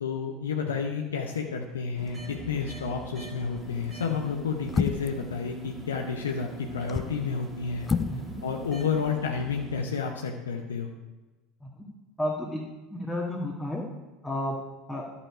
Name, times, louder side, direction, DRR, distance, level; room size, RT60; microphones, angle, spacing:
voice 1, 0.0-7.9 8.4-10.9, left 6 dB, 75° left, 2 dB, 0.7 m, -30 dB
sound 1, 2.0-9.8, right 3 dB, 25° right, 2.0 m, -42 dB
sound 2, 3.6-3.9 4.7-5.2 6.7-7.2 7.8-8.2 8.5-8.6, left 5 dB, 20° left, 0.5 m, -29 dB
voice 2, 12.2-12.6 12.9-13.8 14.2-14.6 14.9-15.0, left 1 dB, 5° left, -5 dB, 1.6 m, -31 dB
11.0 x 7.1 x 4.9 m, 1.2 s
figure-of-eight pair, 75°, 0 cm